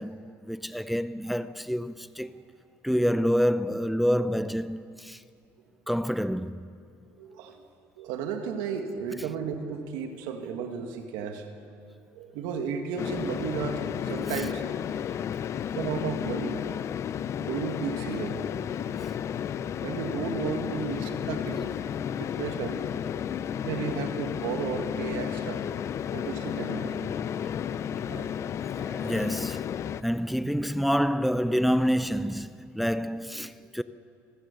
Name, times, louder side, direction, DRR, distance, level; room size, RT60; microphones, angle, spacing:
voice 1, 0.0-2.5 2.8-5.2 5.9-6.8 14.3-14.4 28.7-29.7 30.0-33.8, equal, ahead, 0.6 m, -28 dB
voice 2, 7.2-7.7 8.0-11.5 12.1-14.6 15.7-16.6 17.4-18.7 19.8-21.8 22.2-22.8 23.1-23.3 23.6-25.6 26.1-27.1 28.1-28.3 33.6-33.7, right 6 dB, 85° right, 2.0 m, -34 dB
sound 1, 13.0-30.0, left 9 dB, 45° left, 0.6 m, -32 dB
25.5 x 15.5 x 6.8 m
cardioid pair, 105°, 7 cm